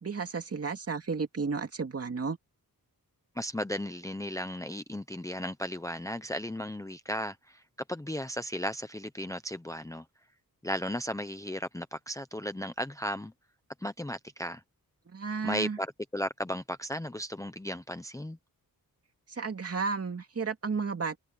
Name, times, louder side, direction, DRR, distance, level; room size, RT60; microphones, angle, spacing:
voice 1, 0.0-2.4 15.1-15.8 19.3-21.2, right 5 dB, 40° right, 2.4 m, -32 dB
voice 2, 3.4-7.6 7.9-10.0 10.6-13.3 13.8-14.6 15.4-18.4, equal, 10° left, 0.7 m, -35 dB
wide cardioid pair, 145°, 36 cm